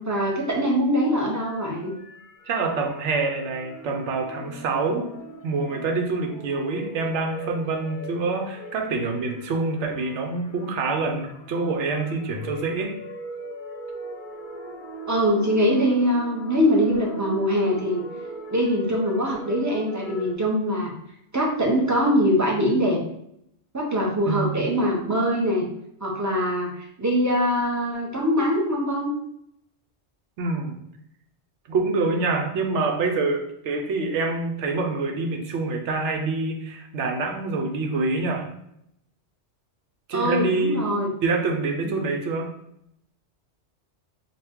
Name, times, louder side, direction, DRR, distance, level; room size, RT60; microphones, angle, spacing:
voice 1, 0.1-1.9 15.1-18.0 18.5-20.9 21.3-23.0 23.7-25.7 26.0-26.7 27.0-29.1 32.1-32.2 40.1-41.1 41.8-42.1, equal, 20° right, -2 dB, 0.6 m, -23 dB
sound 1, 1.4-20.3, right 1 dB, 55° left, 0.7 m, -40 dB
voice 2, 2.5-5.1 5.4-13.0 24.2-24.6 30.4-30.7 31.7-38.5 40.1-40.8 41.2-42.5, right 3 dB, 85° right, 3 dB, 1.0 m, -26 dB
4.1 x 2.2 x 3.5 m, 0.74 s
omnidirectional pair, 1.2 m